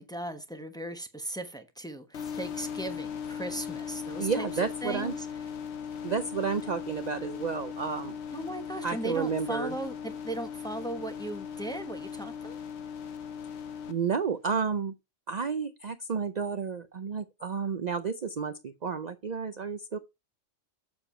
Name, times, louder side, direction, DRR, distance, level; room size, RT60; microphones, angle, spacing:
voice 1, 0.0-4.5 4.8-5.3 8.3-12.6, right 1 dB, 5° left, 0.9 m, -37 dB
sound 1, 2.1-13.9, left 7 dB, 65° left, 1.1 m, -38 dB
voice 2, 4.2-5.1 6.0-8.2 8.8-9.7 13.9-14.9 15.3-20.0, right 5 dB, 45° right, 0.6 m, -31 dB
7.0 x 6.9 x 4.2 m
omnidirectional pair, 1.2 m